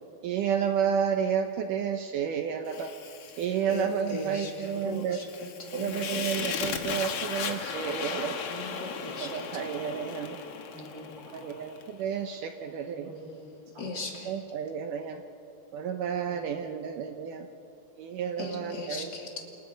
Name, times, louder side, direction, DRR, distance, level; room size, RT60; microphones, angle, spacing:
voice 1, 0.2-2.9 3.4-5.2 5.7-8.4 9.2-10.4 11.3-13.1 14.3-15.2 15.7-17.5 18.0-19.1, right 7 dB, 80° right, 6 dB, 1.8 m, -31 dB
Fire, 2.7-11.9, left 6 dB, 70° left, 1.4 m, -37 dB
voice 2, 3.7-6.7 8.5-9.5 9.9-10.1 13.8-14.4 18.4-19.4, left 2 dB, 30° left, 1 dB, 2.5 m, -38 dB
voice 3, 10.7-11.8 12.6-13.5 13.7-13.8 16.8-16.9 17.3-17.4, equal, 60° right, -2 dB, 8.2 m, -48 dB
29.0 x 28.5 x 5.2 m, 2.9 s
omnidirectional pair, 4.8 m